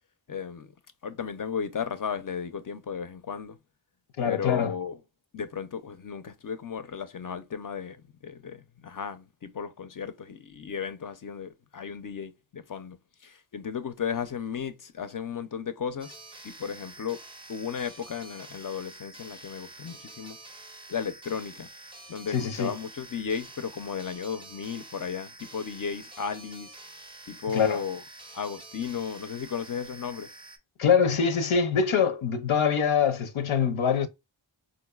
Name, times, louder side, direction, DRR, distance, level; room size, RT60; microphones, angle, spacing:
voice 1, 0.3-0.7 1.0-3.6 4.2-5.0 5.3-13.0 13.2-16.2 16.4-17.2 17.5-20.4 20.9-21.7 22.1-26.7 27.3-28.0 28.3-30.3, left 7 dB, 45° left, 0.4 m, -34 dB
voice 2, 4.2-4.7 22.3-22.7 27.5-27.8 30.8-34.1, left 6 dB, 90° left, 0.6 m, -24 dB
sound 1, 16.0-30.6, right 2 dB, 10° right, 0.5 m, -47 dB
3.9 x 2.5 x 2.2 m
wide cardioid pair, 95°, 47 cm